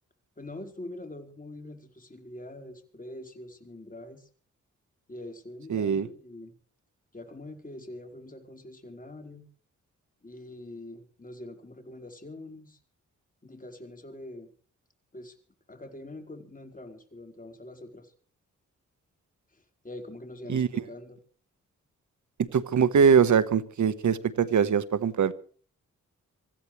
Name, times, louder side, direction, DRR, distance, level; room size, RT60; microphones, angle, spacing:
voice 1, 0.4-4.3 5.1-6.5 7.1-9.5 10.2-12.8 13.4-14.5 15.1-15.4 15.7-18.1 19.5-21.2, left 1 dB, 25° left, 4 dB, 4.7 m, -44 dB
voice 2, 5.7-6.1 20.5-20.8 22.4-25.3, right 6 dB, 70° right, 15 dB, 1.3 m, -22 dB
25.5 x 15.0 x 3.3 m, 0.43 s
cardioid pair, 65°, 31 cm